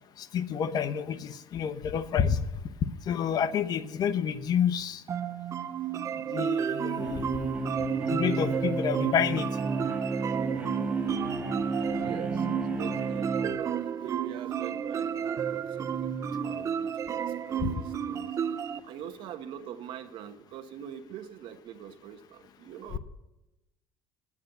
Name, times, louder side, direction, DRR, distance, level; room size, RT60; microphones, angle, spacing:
voice 1, 0.2-2.4 3.1-5.0 6.3-7.4 8.1-9.5 17.6-17.7, left 8 dB, 50° left, 13 dB, 0.8 m, -29 dB
sound 1, 5.1-18.8, right 8 dB, 35° right, 0.5 m, -32 dB
sound 2, 7.0-13.5, right 3 dB, 15° right, 1.8 m, -32 dB
voice 2, 12.0-18.3 18.8-23.0, right 9 dB, 65° right, 10 dB, 1.1 m, -43 dB
9.6 x 9.4 x 6.7 m, 0.98 s
cardioid pair, 115°, 9 cm